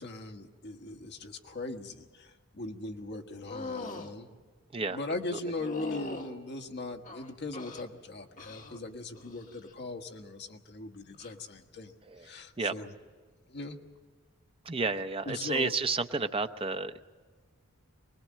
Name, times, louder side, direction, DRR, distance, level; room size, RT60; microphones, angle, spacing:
voice 1, 0.0-4.3 4.9-12.9 13.5-13.8 15.3-15.7, left 2 dB, 55° left, 5 dB, 1.4 m, -39 dB
sound 1, 3.5-4.1 5.5-6.3 7.0-7.9 8.4-8.8 9.1-9.6 11.1-11.3, left 3 dB, 40° left, 1.4 m, -41 dB
voice 2, 14.6-17.0, right 4 dB, 25° right, 8 dB, 0.7 m, -31 dB
24.0 x 20.0 x 7.5 m, 1.4 s
head